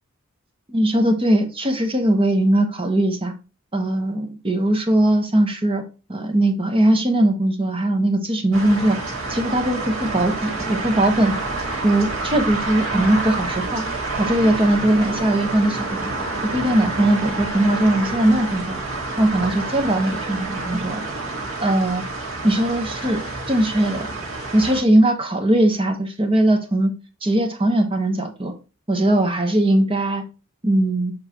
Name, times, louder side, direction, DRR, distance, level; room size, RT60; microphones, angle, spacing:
voice 1, 0.7-3.3 3.7-5.8 6.1-9.0 9.3-11.5 11.8-13.8 14.2-16.1 16.5-18.8 19.2-21.1 21.6-22.0 22.4-24.1 24.5-26.9 27.2-28.5 28.9-30.2 30.6-31.1, right 1 dB, 25° right, 5 dB, 1.2 m, -20 dB
sound 1, 8.5-24.8, right 3 dB, 70° right, 2.2 m, -28 dB
7.2 x 5.2 x 3.0 m, 0.32 s
head